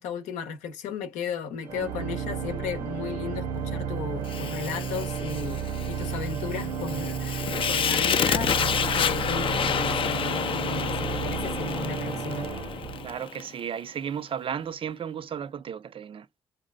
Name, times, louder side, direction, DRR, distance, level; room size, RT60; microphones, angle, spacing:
voice 1, 0.0-5.6 5.9-12.5, left 5 dB, 80° left, 0.7 m, -35 dB
Organ, 1.6-13.5, right 6 dB, 80° right, 1.1 m, -32 dB
Fire, 4.3-13.5, left 7 dB, 45° left, 0.4 m, -29 dB
voice 2, 13.0-16.3, right 8 dB, 45° right, 0.4 m, -34 dB
2.7 x 2.4 x 4.2 m
hypercardioid pair, 45°, 12 cm